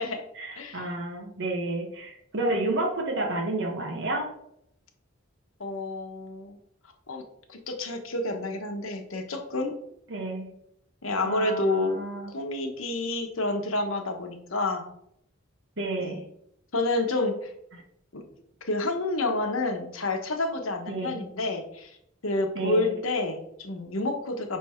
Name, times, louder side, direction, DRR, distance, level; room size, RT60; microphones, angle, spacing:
voice 1, 0.3-4.3 10.1-10.5 11.2-12.3 15.8-16.2 20.9-21.2 22.5-22.9, right 2 dB, 60° right, 0 dB, 1.4 m, -30 dB
voice 2, 5.6-6.6 7.1-7.2 7.5-9.8 11.0-12.0 12.3-14.8 16.0-16.2 16.7-17.5 18.1-18.2 18.6-21.9 22.2-24.6, left 2 dB, 85° left, 4 dB, 1.2 m, -29 dB
6.1 x 5.4 x 4.5 m, 0.75 s
head